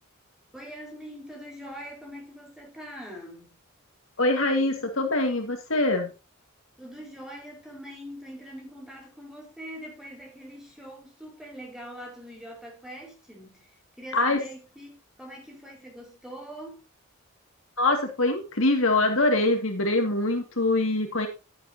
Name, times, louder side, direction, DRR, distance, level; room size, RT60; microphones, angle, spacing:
voice 1, 0.5-3.5 6.8-13.7 14.0-16.8, equal, ahead, 5.0 m, -43 dB
voice 2, 4.2-6.1 14.1-14.4 17.8-21.3, left 2 dB, 65° left, 2.2 m, -24 dB
11.5 x 11.0 x 2.8 m
head